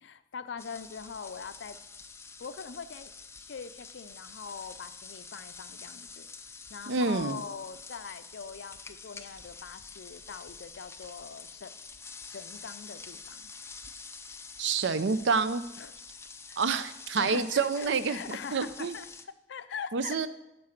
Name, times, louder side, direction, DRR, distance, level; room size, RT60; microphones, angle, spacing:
voice 1, 0.0-1.8 2.4-3.1 3.4-6.3 6.7-11.7 12.2-13.5 15.8-15.9 16.5-20.2, left 6 dB, 70° left, 12 dB, 0.5 m, -42 dB
sound 1, 0.6-19.3, left 5 dB, 15° left, 0.4 m, -47 dB
voice 2, 6.9-7.4 14.6-15.6 16.6-18.2 18.5-18.9 19.9-20.3, right 4 dB, 75° right, 13 dB, 0.5 m, -28 dB
8.6 x 5.3 x 5.9 m, 0.93 s
head